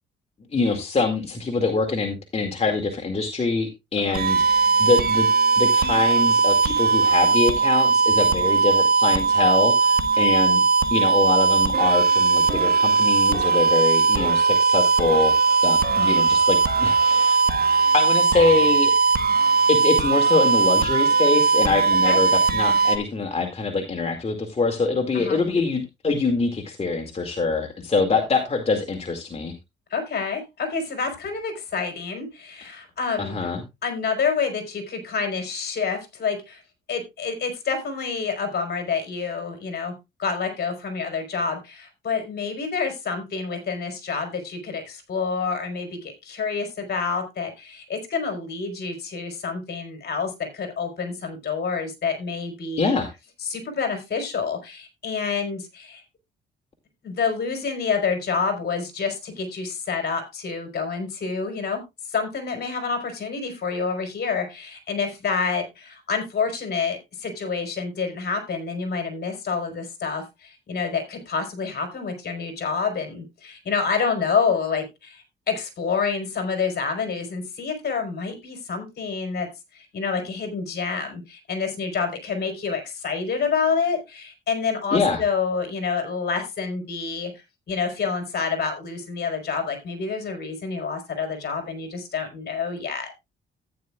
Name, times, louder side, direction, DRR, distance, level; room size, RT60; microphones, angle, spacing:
voice 1, 0.5-5.3 5.6-10.6 10.9-15.4 15.6-17.4 17.9-18.9 19.7-29.5 33.2-33.6 52.8-53.1 84.9-85.2, left 4 dB, 30° left, 3 dB, 2.1 m, -24 dB
sound 1, 4.1-23.0, right 4 dB, 50° right, 1.3 m, -19 dB
voice 2, 29.9-33.4 33.8-36.6 36.9-53.0 53.4-56.0 57.0-61.8 62.1-87.3 87.7-93.1, left 5 dB, 55° left, 6 dB, 4.1 m, -28 dB
14.0 x 9.6 x 2.4 m, 0.23 s
cardioid pair, 90°, 20 cm